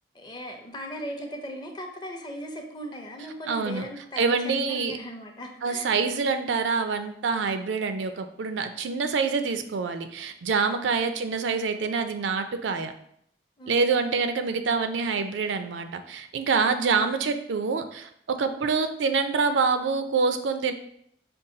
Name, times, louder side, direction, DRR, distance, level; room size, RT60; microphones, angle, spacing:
voice 1, 0.1-5.9 10.8-11.2 13.6-13.9 16.9-17.2, equal, 25° left, 3 dB, 0.6 m, -38 dB
voice 2, 3.5-3.9 4.2-5.0 5.6-12.9 13.7-20.7, right 4 dB, 80° right, 9 dB, 0.4 m, -26 dB
5.3 x 2.3 x 3.7 m, 0.70 s
head